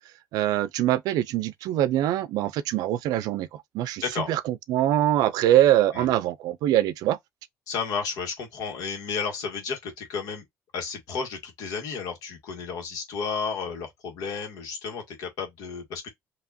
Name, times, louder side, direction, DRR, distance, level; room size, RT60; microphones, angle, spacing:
voice 1, 0.3-4.0 4.3-7.2, right 13 dB, 80° right, 0.5 m, -23 dB
voice 2, 7.7-10.4 10.7-16.1, left 5 dB, 70° left, 1.7 m, -32 dB
4.8 x 2.9 x 2.7 m
cardioid pair, 160°, 6 cm